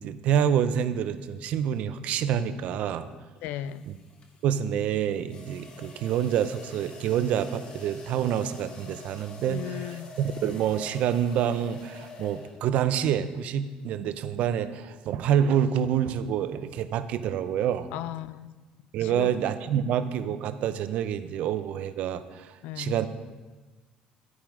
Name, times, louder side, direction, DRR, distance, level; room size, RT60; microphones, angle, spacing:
voice 1, 0.0-3.1 3.9-4.0 4.4-17.9 18.9-23.1, right 9 dB, 55° right, 12 dB, 0.5 m, -27 dB
sound 1, 1.7-2.0 3.7-12.9, left 3 dB, 35° left, 1.0 m, -47 dB
voice 2, 3.4-3.9 9.5-10.1 17.9-18.6 19.0-19.4 19.7-19.9 22.6-23.0, left 12 dB, 80° left, 16 dB, 0.4 m, -36 dB
11.0 x 6.0 x 4.9 m, 1.3 s
cardioid pair, 160°, 3 cm